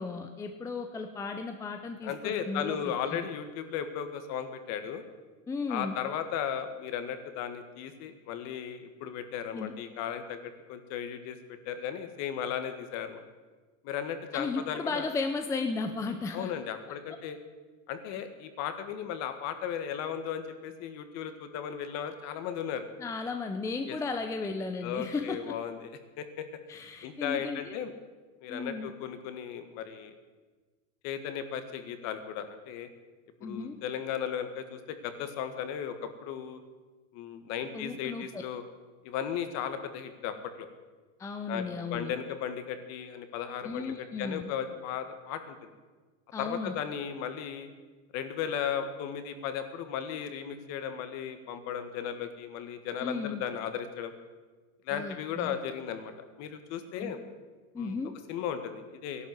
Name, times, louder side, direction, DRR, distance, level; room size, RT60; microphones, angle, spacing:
voice 1, 0.0-2.8 5.5-5.9 9.5-9.7 14.3-16.5 23.0-25.5 26.7-27.8 28.5-28.9 33.4-33.8 37.7-38.4 41.2-42.1 43.6-44.5 46.3-46.8 53.0-53.4 54.9-55.6 57.0-57.1 57.7-58.1, left 4 dB, 10° left, 6 dB, 0.6 m, -35 dB
voice 2, 2.0-5.0 5.7-11.4 11.6-13.2 13.8-15.1 16.3-17.4 17.9-22.8 23.8-24.0 24.8-26.5 27.0-27.9 28.4-30.1 31.0-32.9 33.4-36.6 37.1-38.6 39.0-40.7 41.5-45.7 46.4-47.7 48.1-54.1 54.8-56.1 56.4-57.2 57.8-58.0 58.3-59.3, left 8 dB, 40° left, 9 dB, 1.8 m, -36 dB
16.0 x 11.5 x 7.9 m, 1.3 s
supercardioid pair, 155°, 39 cm